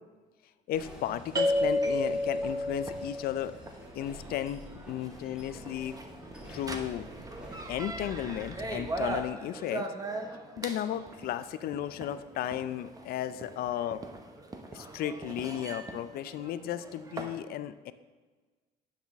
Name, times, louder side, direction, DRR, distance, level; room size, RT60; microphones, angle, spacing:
voice 1, 0.7-3.5 3.9-6.0 6.5-7.1 7.7-9.9 10.6-14.0 14.7-17.9, left 11 dB, 65° left, 13 dB, 0.4 m, -34 dB
sound 1, 0.7-8.4, equal, 5° right, 1.6 m, -49 dB
sound 2, 1.3-17.4, equal, 20° right, 0.8 m, -36 dB
9.4 x 5.7 x 3.5 m, 1.3 s
cardioid pair, 110°, 17 cm